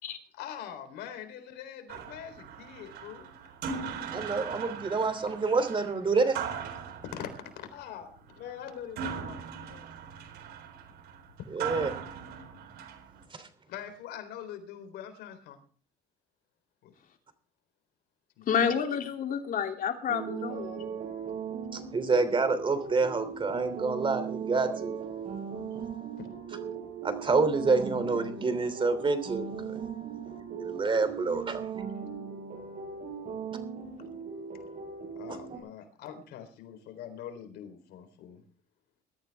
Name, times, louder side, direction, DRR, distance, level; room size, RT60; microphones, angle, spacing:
voice 1, 0.3-3.3 7.0-9.4 9.7-9.9 11.6-11.7 13.7-15.6 16.8-16.9 18.4-18.7 26.2-26.3 35.2-38.4, left 9 dB, 80° left, 3.9 m, -43 dB
sound 1, 1.9-13.2, right 6 dB, 75° right, 4.0 m, -40 dB
voice 2, 4.1-6.4 11.5-11.9 13.3-13.5 21.7-25.0 27.0-29.8 30.1-30.2 30.6-31.6, right 4 dB, 30° right, 3.1 m, -28 dB
voice 3, 18.5-20.8, left 7 dB, 55° left, 3.0 m, -29 dB
sound 2, 20.1-35.6, right 6 dB, 50° right, 8.0 m, -38 dB
21.5 x 13.5 x 3.5 m
cardioid pair, 110°, 17 cm